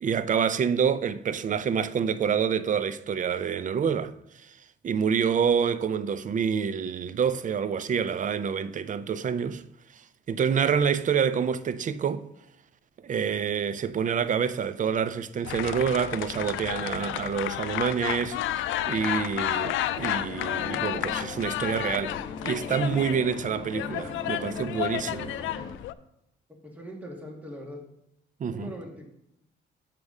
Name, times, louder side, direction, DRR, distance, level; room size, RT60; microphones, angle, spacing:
voice 1, 0.0-4.1 4.4-4.5 4.8-9.6 10.3-12.2 13.0-22.2 22.4-25.3 28.4-28.7, right 7 dB, 40° right, 0.5 m, -27 dB
sound 1, 15.4-25.9, left 13 dB, 80° left, 0.4 m, -32 dB
sound 2, 20.0-25.7, left 3 dB, 20° left, 1.3 m, -40 dB
voice 2, 26.6-27.8 28.5-29.1, equal, 5° right, 2.1 m, -41 dB
7.5 x 4.8 x 5.4 m
cardioid pair, 90°, 20 cm